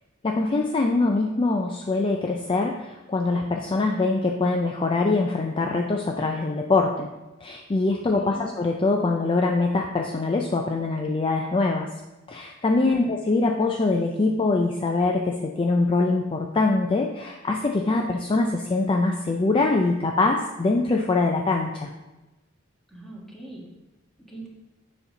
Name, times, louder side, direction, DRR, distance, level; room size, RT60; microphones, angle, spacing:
voice 1, 0.2-7.1 7.4-11.9 12.3-21.9, left 3 dB, 25° left, 2 dB, 0.4 m, -23 dB
voice 2, 12.8-13.1 22.9-23.7 24.3-24.5, right 1 dB, ahead, -4 dB, 1.5 m, -40 dB
7.2 x 5.2 x 4.0 m, 1.1 s
head